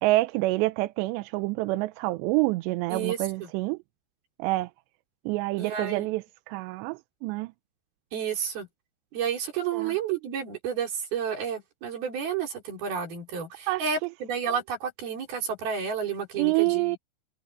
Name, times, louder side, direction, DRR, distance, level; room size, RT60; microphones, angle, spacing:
voice 1, 0.0-3.8 4.4-4.7 5.3-7.5 9.7-9.9 13.7-13.9 16.4-17.0, right 20 dB, 90° right, 2.9 m, -27 dB
voice 2, 2.9-3.5 5.6-6.1 8.1-8.7 9.1-17.0, right 7 dB, 60° right, 6.2 m, -31 dB
omnidirectional pair, 4.9 m